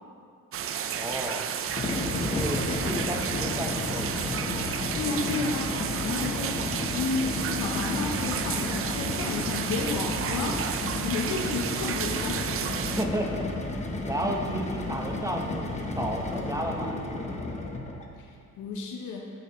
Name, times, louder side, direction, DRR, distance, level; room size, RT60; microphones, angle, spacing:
sound 1, 0.5-13.0, right 8 dB, 50° right, 0.4 m, -32 dB
voice 1, 0.9-1.5 2.2-4.2 12.9-13.5 14.1-17.4, right 1 dB, 10° right, 0 dB, 0.8 m, -33 dB
sound 2, 1.7-18.1, left 2 dB, 25° left, 0.8 m, -32 dB
voice 2, 4.9-5.7 6.0-6.6 6.9-10.6 11.0-12.4 18.2-19.2, left 4 dB, 80° left, 1 dB, 0.8 m, -32 dB
8.8 x 6.1 x 3.0 m, 2.4 s
cardioid pair, 90°, 30 cm